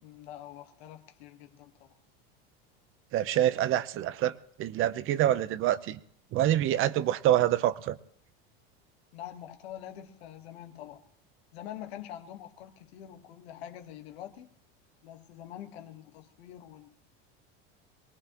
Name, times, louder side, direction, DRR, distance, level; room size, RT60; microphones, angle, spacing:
voice 1, 0.0-2.0 9.1-11.0 11.5-14.5 15.0-16.9, left 11 dB, 85° left, 1.5 m, -45 dB
voice 2, 3.1-4.3 4.6-6.0 6.3-8.0, right 12 dB, 40° right, 0.8 m, -26 dB
23.0 x 19.5 x 3.0 m
supercardioid pair, 130°, 31 cm